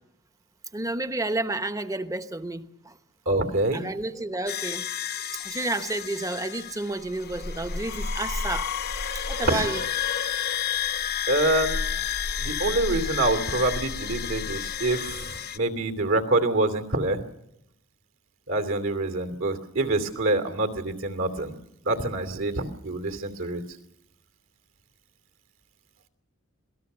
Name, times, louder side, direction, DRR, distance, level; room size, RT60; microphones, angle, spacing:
voice 1, 0.7-3.0 3.7-4.9 5.3-8.7 9.3-9.8, right 2 dB, 15° right, 1.0 m, -31 dB
voice 2, 3.3-3.8 9.4-9.7 11.3-11.8 12.4-15.3 15.5-17.2 18.5-21.5 21.8-23.6, right 2 dB, 65° right, 2.8 m, -26 dB
sound 1, 4.5-15.6, left 7 dB, 50° left, 0.9 m, -31 dB
27.0 x 18.5 x 6.8 m
head